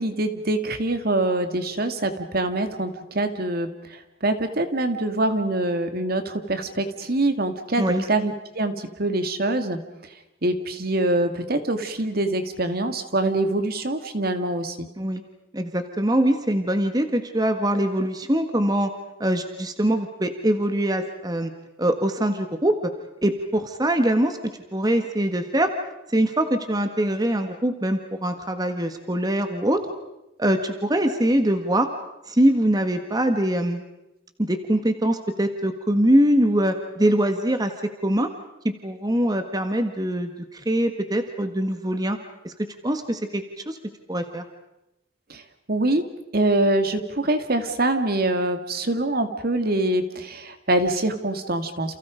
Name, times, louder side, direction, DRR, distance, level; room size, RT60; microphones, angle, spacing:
voice 1, 0.0-9.8 10.4-14.9 45.3-45.4 45.7-46.0 46.3-52.0, right 2 dB, 55° right, 8 dB, 2.2 m, -24 dB
voice 2, 15.5-18.9 19.2-21.5 21.8-22.9 23.2-24.4 24.7-25.7 26.1-29.8 30.4-31.9 32.3-33.8 34.4-38.3 38.6-42.2 42.4-43.8 44.1-44.4, right 1 dB, 20° right, 7 dB, 1.6 m, -23 dB
29.5 x 28.5 x 5.2 m, 0.92 s
head